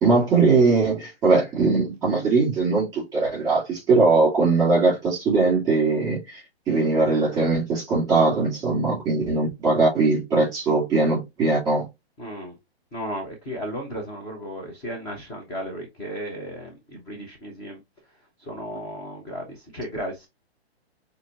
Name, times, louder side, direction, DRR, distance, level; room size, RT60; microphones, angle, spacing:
voice 1, 0.0-11.9, right 3 dB, 10° right, 2.9 m, -21 dB
voice 2, 12.2-12.6 12.9-17.8 18.1-20.3, equal, 10° left, 0.6 m, -35 dB
5.7 x 2.6 x 2.7 m
hypercardioid pair, 155°, 33 cm